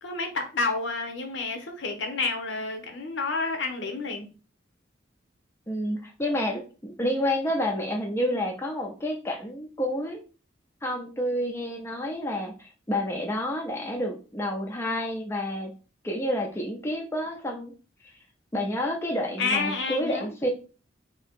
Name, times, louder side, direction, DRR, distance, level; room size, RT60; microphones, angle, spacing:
voice 1, 0.0-4.3 19.4-20.3, left 3 dB, 75° left, 4 dB, 0.8 m, -29 dB
voice 2, 5.7-10.2 10.8-15.7 16.0-17.7 18.5-20.5, left 1 dB, 15° left, 1 dB, 0.5 m, -29 dB
2.8 x 2.7 x 3.5 m, 0.35 s
head